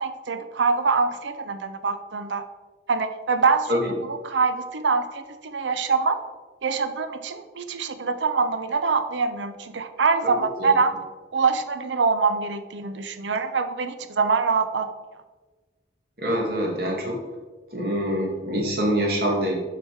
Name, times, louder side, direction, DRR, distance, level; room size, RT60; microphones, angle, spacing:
voice 1, 0.0-2.4 2.9-3.7 4.1-6.2 6.6-11.0 11.3-14.9, right 4 dB, 85° right, 10 dB, 0.6 m, -24 dB
voice 2, 16.2-17.2 17.7-19.6, equal, 55° right, -1 dB, 1.8 m, -25 dB
7.2 x 5.2 x 4.5 m, 1.3 s
head